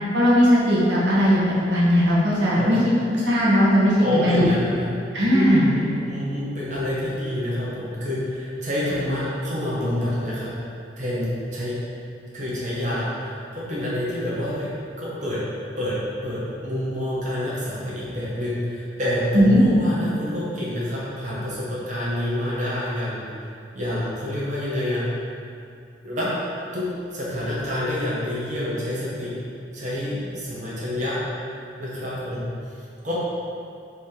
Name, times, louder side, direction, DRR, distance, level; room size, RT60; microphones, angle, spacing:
voice 1, 0.1-2.8 3.1-4.5 5.1-5.7 19.3-19.6, equal, 80° right, -7 dB, 0.9 m, -18 dB
voice 2, 4.0-4.9 5.3-10.5 11.0-11.7 12.3-14.7 15.0-15.4 15.8-16.0 16.2-23.2 23.7-25.1 26.0-26.3 26.7-29.3 29.7-31.2 31.8-32.7 33.0-33.1, left 1 dB, 45° right, -8 dB, 0.9 m, -27 dB
4.9 x 2.8 x 3.7 m, 2.4 s
head